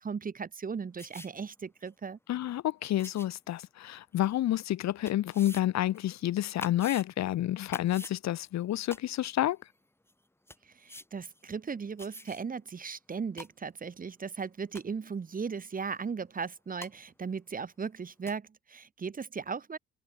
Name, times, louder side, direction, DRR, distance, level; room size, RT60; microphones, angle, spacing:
voice 1, 0.0-2.2 10.6-19.8, right 5 dB, 30° right, 0.9 m, -37 dB
sound 1, 1.0-1.3 1.9-2.0 3.0-3.3 4.1-4.2 5.0-5.6 5.9-6.0 6.6-7.0 7.7-8.2 8.9-9.0 9.7-9.8 10.1-10.2 10.5-10.6 10.9-11.0 11.3-11.4 12.0-12.4 12.8-12.9 13.2-13.5 14.4-14.5 14.7-15.0 16.4-16.5 16.8-16.9 17.8-17.9 18.3-18.4, left 1 dB, 10° left, 2.6 m, -45 dB
voice 2, 2.3-9.6, left 13 dB, 65° left, 0.8 m, -29 dB
cardioid pair, 90°, 30 cm